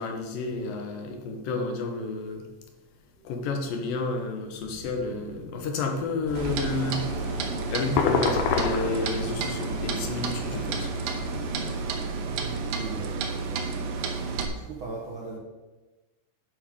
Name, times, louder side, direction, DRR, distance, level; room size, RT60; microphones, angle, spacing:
voice 1, 0.0-2.5 3.2-7.1 7.7-10.9, left 3 dB, 90° left, 4 dB, 2.9 m, -31 dB
sound 1, 3.0-7.3 8.0-9.6, equal, 25° left, 2.8 m, -49 dB
sound 2, 6.3-12.0, left 5 dB, 70° left, 1.9 m, -31 dB
Clock, 6.3-14.5, right 5 dB, 85° right, 2.6 m, -31 dB
voice 2, 12.2-13.9 14.4-15.4, right 3 dB, 70° right, -2 dB, 1.2 m, -40 dB
10.5 x 5.1 x 5.3 m, 1.2 s
omnidirectional pair, 3.8 m